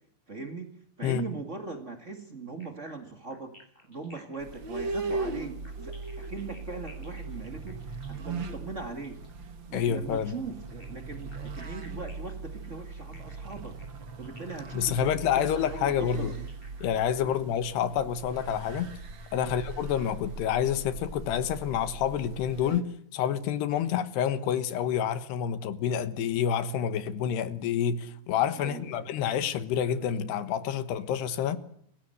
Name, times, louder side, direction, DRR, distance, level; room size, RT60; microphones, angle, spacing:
voice 1, 0.3-3.6 3.9-9.2 9.7-13.8 14.2-16.5 17.2-17.4 19.3-19.5 28.6-29.0, right 3 dB, 80° right, 0.6 m, -40 dB
sound 1, 2.6-9.4 10.6-17.3, left 1 dB, 10° left, 7.4 m, -56 dB
sound 2, 4.4-22.8, right 3 dB, 50° right, 1.3 m, -39 dB
voice 2, 9.7-10.4 14.7-16.3 16.8-18.9 19.3-22.9 23.1-31.6, left 9 dB, 70° left, 3.2 m, -28 dB
28.5 x 16.0 x 7.9 m
omnidirectional pair, 5.2 m